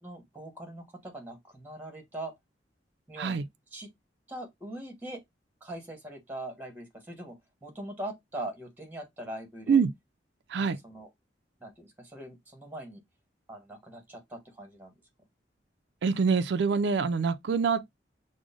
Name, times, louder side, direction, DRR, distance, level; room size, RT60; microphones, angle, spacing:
voice 1, 0.0-2.3 3.1-3.4 3.7-3.9 4.3-5.2 5.6-9.8 10.6-11.1 11.6-13.0 13.5-14.9, right 1 dB, 10° right, 1.1 m, -41 dB
voice 2, 16.0-17.8, right 5 dB, 70° right, 0.4 m, -25 dB
6.1 x 2.1 x 2.4 m
head